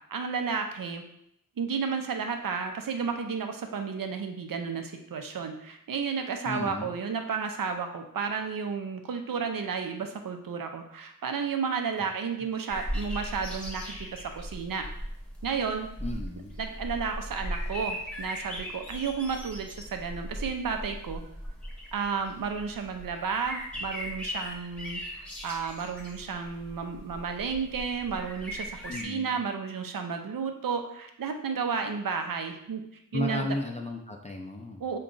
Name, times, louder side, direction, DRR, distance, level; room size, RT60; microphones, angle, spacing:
voice 1, 0.1-1.0 1.6-14.9 15.4-15.9 16.6-21.2 21.9-32.8 33.1-33.5 34.8-35.0, right 5 dB, 80° right, 5 dB, 0.5 m, -32 dB
voice 2, 6.5-6.9 16.0-16.5 28.9-29.4 33.1-34.8, left 2 dB, 20° left, 1 dB, 0.4 m, -34 dB
sound 1, 12.7-29.1, equal, 5° left, 0.8 m, -38 dB
3.8 x 2.3 x 3.7 m, 0.74 s
wide cardioid pair, 65°, 33 cm